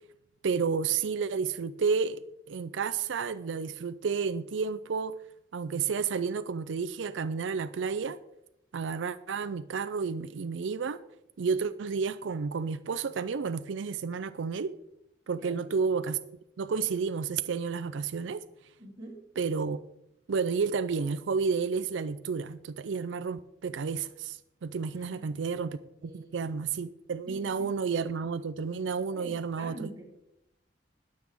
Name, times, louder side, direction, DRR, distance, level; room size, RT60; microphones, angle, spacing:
voice 1, 0.4-2.2 2.5-5.2 5.5-8.2 8.7-11.0 11.4-14.7 15.3-16.2 16.6-18.4 19.4-19.8 20.3-30.0, right 5 dB, 85° right, 0.4 m, -31 dB
voice 2, 18.8-19.2 24.9-25.3 26.0-26.6 27.3-27.7 29.0-30.0, right 1 dB, 20° right, 3.6 m, -46 dB
20.5 x 7.7 x 3.5 m
head